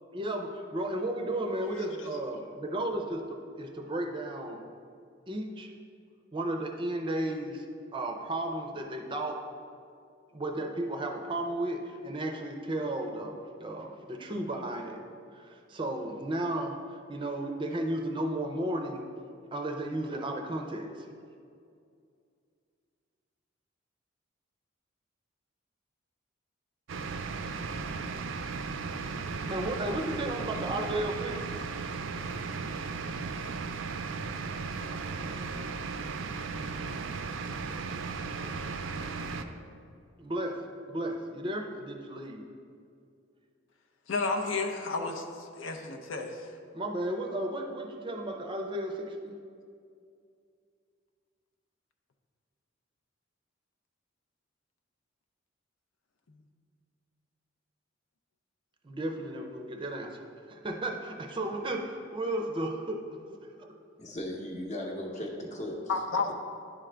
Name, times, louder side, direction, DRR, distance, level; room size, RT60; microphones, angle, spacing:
voice 1, 0.1-4.7 5.3-5.7 6.3-7.6 7.9-9.4 10.3-15.0 15.4-16.8 17.1-19.0 19.5-21.1 29.5-31.6 40.2-40.6 40.9-42.4 46.7-49.4 58.8-60.2 60.5-63.0, right 1 dB, 25° right, 3 dB, 0.5 m, -34 dB
sound 1, 26.9-39.4, right 4 dB, 80° right, 0.4 m, -36 dB
voice 2, 44.1-46.5 65.9-66.3, left 3 dB, 85° left, 4 dB, 0.6 m, -32 dB
voice 3, 64.0-65.8 66.1-66.3, left 1 dB, 40° left, 0 dB, 0.9 m, -37 dB
10.5 x 3.7 x 3.3 m, 2.4 s
head